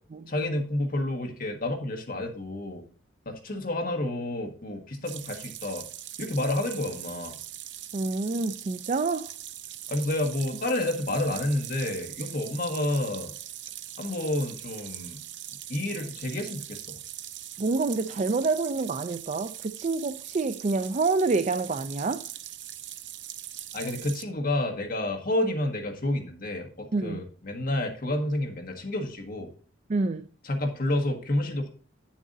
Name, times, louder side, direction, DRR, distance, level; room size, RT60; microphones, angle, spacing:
voice 1, 0.3-2.8 3.2-5.8 6.2-7.4 9.9-13.3 14.0-15.2 15.7-17.0 23.7-29.5 30.4-31.7, left 1 dB, 45° left, 1.6 m, -29 dB
sound 1, 5.0-24.2, right 12 dB, 65° right, 0.8 m, -41 dB
voice 2, 7.9-9.3 17.6-22.2 26.9-27.2 29.9-30.3, right 3 dB, 35° right, 0.4 m, -27 dB
10.5 x 7.2 x 2.7 m
head